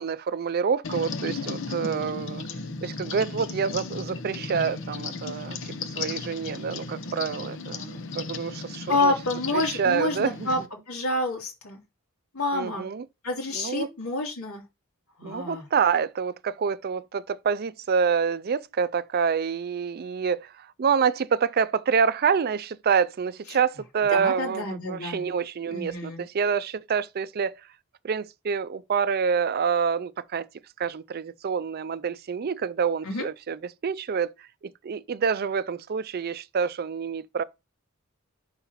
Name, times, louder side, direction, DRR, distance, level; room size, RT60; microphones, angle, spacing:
voice 1, 0.0-2.4 2.8-9.1 9.5-10.5 12.5-13.1 13.5-13.9 15.2-27.6 28.0-30.5 30.8-34.3 34.6-37.4, right 6 dB, 45° right, 0.4 m, -27 dB
sound 1, 0.8-10.7, left 4 dB, 60° left, 0.8 m, -35 dB
voice 2, 8.9-10.6 10.9-11.8 12.3-12.9 13.2-14.6 15.2-15.6 23.5-23.6 24.1-25.3 25.7-26.2 33.0-33.3, left 2 dB, 80° left, 2.7 m, -28 dB
5.7 x 4.7 x 5.5 m
head